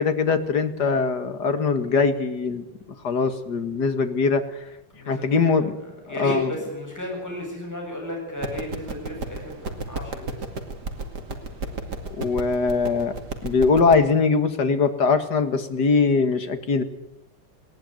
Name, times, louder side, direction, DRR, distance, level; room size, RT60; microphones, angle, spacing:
voice 1, 0.0-2.6 3.0-4.6 5.1-5.7 6.2-6.5 12.2-13.1 13.4-16.8, left 4 dB, 50° left, 8 dB, 2.4 m, -21 dB
voice 2, 4.9-10.4, left 1 dB, 5° left, 0 dB, 8.0 m, -34 dB
sound 1, 8.4-13.9, right 3 dB, 50° right, 2.8 m, -34 dB
21.0 x 18.5 x 9.3 m, 0.88 s
omnidirectional pair, 2.3 m